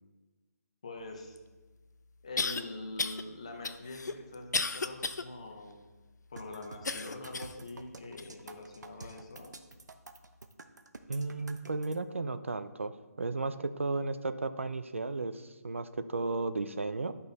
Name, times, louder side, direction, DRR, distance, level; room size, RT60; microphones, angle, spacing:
voice 1, 0.8-1.4 2.2-5.8 6.3-9.5, left 2 dB, 20° left, 3 dB, 0.7 m, -44 dB
sound 1, 1.4-1.5 2.4-2.6 3.0-3.2 3.6-5.2 5.7-5.8 6.8-7.6 8.2-8.3 9.0-9.1, left 4 dB, 80° left, 0.6 m, -33 dB
sound 2, 6.4-12.0, right 3 dB, 80° right, 0.9 m, -49 dB
voice 2, 11.1-12.9 13.2-17.1, right 3 dB, 45° right, 11 dB, 0.5 m, -34 dB
10.5 x 5.5 x 4.0 m, 1.3 s
hypercardioid pair, 180°, 9 cm